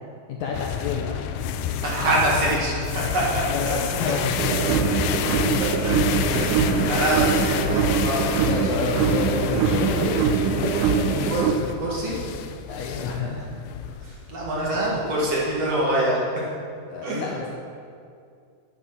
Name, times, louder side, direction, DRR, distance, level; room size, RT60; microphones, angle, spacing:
voice 1, 0.3-1.2 1.4-1.5 3.5-5.2 5.5-5.7 6.6-6.9 8.5-11.6 12.7-13.6 14.5-14.8 16.9-17.5, left 5 dB, 75° left, -1 dB, 1.9 m, -30 dB
sound 1, 0.5-15.9, left 8 dB, 90° left, 2.5 m, -29 dB
voice 2, 1.8-4.1 5.6-5.9 6.3-8.5 11.3-11.5 11.8-12.2 13.9-16.2 17.0-17.3, right 1 dB, 50° right, -4 dB, 2.5 m, -25 dB
sound 2, 4.4-11.5, right 8 dB, 85° right, 1.9 m, -23 dB
9.9 x 7.4 x 7.5 m, 2.3 s
omnidirectional pair, 4.3 m